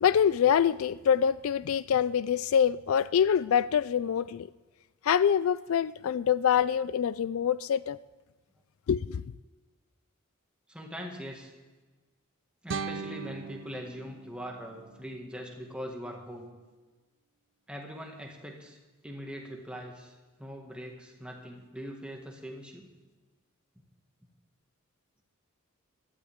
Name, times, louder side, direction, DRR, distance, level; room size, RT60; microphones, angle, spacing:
voice 1, 0.0-4.5 5.0-8.0 8.9-9.2, left 8 dB, 75° left, 0.3 m, -25 dB
voice 2, 2.9-3.3 10.7-11.5 12.6-16.5 17.7-18.8 19.0-22.9, equal, 5° right, 1.8 m, -42 dB
sound 1, 12.7-15.7, right 5 dB, 55° right, 0.5 m, -40 dB
16.5 x 12.5 x 3.6 m
head